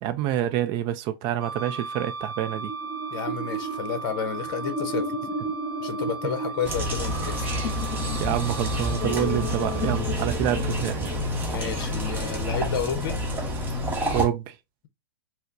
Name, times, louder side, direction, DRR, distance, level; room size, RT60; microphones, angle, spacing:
voice 1, 0.0-2.7 8.2-11.1 14.1-14.6, right 11 dB, 35° right, 0.4 m, -27 dB
Wind instrument woodwind instrument, 1.4-10.1, right 4 dB, 70° right, 0.7 m, -37 dB
sound 1, 2.5-11.9, left 1 dB, 35° left, 1.8 m, -34 dB
voice 2, 3.1-5.1 5.8-7.5 11.4-13.2, left 7 dB, 55° left, 0.7 m, -31 dB
sound 2, 6.6-14.3, equal, 15° right, 0.9 m, -28 dB
4.2 x 2.0 x 2.5 m
hypercardioid pair, 120°, 13 cm